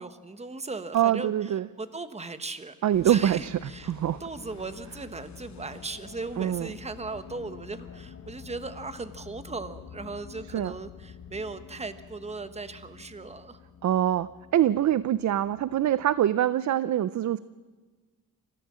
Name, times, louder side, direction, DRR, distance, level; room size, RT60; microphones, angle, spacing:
voice 1, 0.0-13.6, right 3 dB, 20° right, 11 dB, 1.2 m, -38 dB
voice 2, 0.9-1.7 2.8-3.6 3.9-4.2 6.4-6.7 10.5-10.7 13.8-17.4, right 11 dB, 55° right, 16 dB, 0.5 m, -24 dB
sound 1, 2.9-16.3, left 7 dB, 55° left, 1.1 m, -48 dB
27.0 x 15.0 x 7.5 m, 1.4 s
wide cardioid pair, 135°, 34 cm